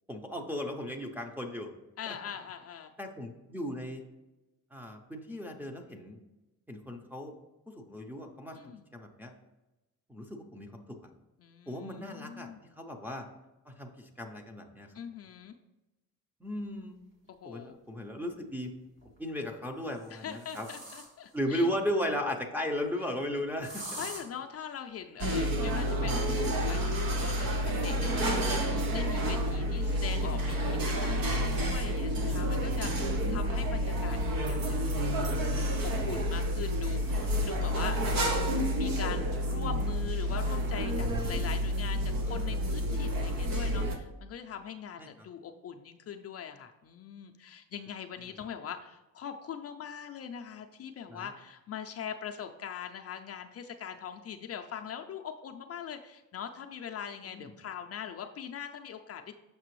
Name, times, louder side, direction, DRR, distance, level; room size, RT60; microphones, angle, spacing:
voice 1, 0.1-1.7 2.1-2.2 3.0-4.0 4.7-6.2 6.7-7.3 7.7-9.3 10.1-11.1 11.7-13.3 13.7-14.9 16.4-17.0 17.4-18.7 19.2-20.7 21.3-24.0 33.2-33.4 45.0-45.1 48.3-48.4 51.1-51.3 57.2-57.5, equal, 5° right, 0 dB, 0.6 m, -36 dB
voice 2, 2.0-2.9 8.5-8.8 11.4-12.6 14.9-15.5 17.3-17.8 20.1-21.7 24.0-59.3, left 8 dB, 45° left, 4 dB, 0.4 m, -42 dB
sound 1, 17.2-17.3 18.8-19.2 19.8-21.4 23.6-24.2 26.8-29.5 30.5-31.8 32.3-32.4 32.7-32.8 33.5-33.6 34.0-34.4, right 1 dB, 35° right, 1.9 m, -48 dB
sound 2, 25.2-44.0, equal, 75° right, 0.9 m, -29 dB
6.7 x 5.9 x 3.1 m, 1.0 s
cardioid pair, 145°, 34 cm